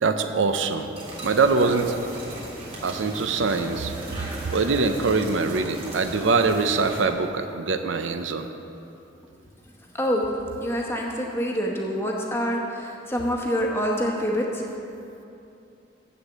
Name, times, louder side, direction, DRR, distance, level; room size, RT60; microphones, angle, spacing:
voice 1, 0.0-0.9 1.2-1.9 2.8-3.9 4.5-8.5, right 4 dB, 85° right, 8 dB, 0.6 m, -23 dB
sound 1, 0.9-7.0, right 1 dB, 30° right, 2.0 m, -36 dB
voice 2, 9.9-10.3 10.6-14.8, equal, 15° left, -1 dB, 1.0 m, -26 dB
7.3 x 6.9 x 8.1 m, 2.8 s
head